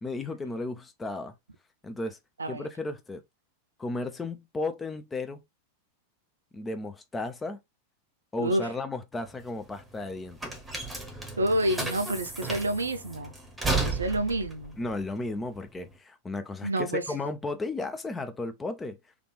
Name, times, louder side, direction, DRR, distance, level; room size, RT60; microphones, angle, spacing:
voice 1, 0.0-1.3 1.8-2.2 2.5-3.2 3.8-5.4 6.5-7.6 8.3-10.6 14.8-19.0, left 2 dB, 15° left, 0.5 m, -34 dB
voice 2, 8.4-8.7 11.4-13.3 13.8-14.8 16.6-17.0, right 1 dB, 75° right, 0.6 m, -28 dB
sound 1, 9.1-15.9, right 3 dB, 5° right, 1.0 m, -34 dB
3.3 x 2.4 x 3.2 m
figure-of-eight pair, 90°, 0 cm